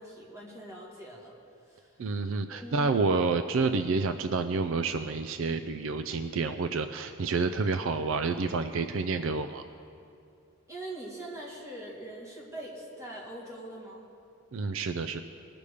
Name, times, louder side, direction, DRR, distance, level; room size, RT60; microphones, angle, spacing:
voice 1, 0.0-1.3 1.7-2.0 2.5-3.0 10.7-14.0, right 1 dB, 15° right, -4 dB, 2.2 m, -42 dB
voice 2, 2.0-9.6 14.5-15.2, right 4 dB, 65° right, 8 dB, 0.4 m, -29 dB
20.0 x 6.9 x 5.0 m, 2.5 s
head